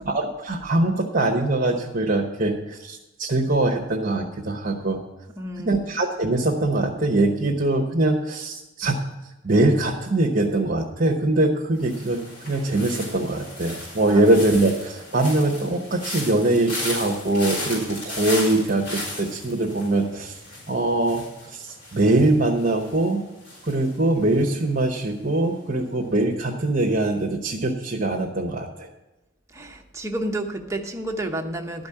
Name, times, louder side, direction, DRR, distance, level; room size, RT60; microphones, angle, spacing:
voice 1, 0.0-5.0 5.6-9.0 9.4-20.4 20.7-23.2 23.6-28.9, right 2 dB, 40° right, -1 dB, 1.1 m, -22 dB
voice 2, 5.4-5.9 14.1-14.3 29.5-31.9, right 1 dB, 15° right, 2 dB, 1.0 m, -31 dB
sound 1, 11.8-24.8 25.1-25.5, left 1 dB, 50° left, 5.3 m, -36 dB
12.5 x 5.3 x 8.6 m, 0.99 s
head